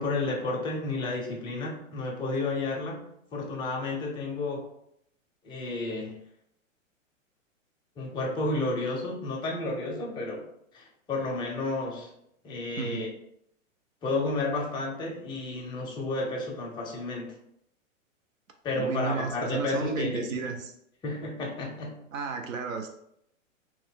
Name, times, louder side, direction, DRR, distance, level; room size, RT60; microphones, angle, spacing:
voice 1, 0.0-3.0 3.3-4.7 5.4-6.2 8.0-10.4 10.7-12.1 12.4-13.1 14.0-17.3 18.6-20.5 21.0-22.0, left 2 dB, 10° left, -1 dB, 0.5 m, -31 dB
voice 2, 18.8-20.7 22.1-22.9, right 5 dB, 85° right, 5 dB, 0.6 m, -32 dB
2.9 x 2.1 x 3.6 m, 0.73 s
hypercardioid pair, 115°, 39 cm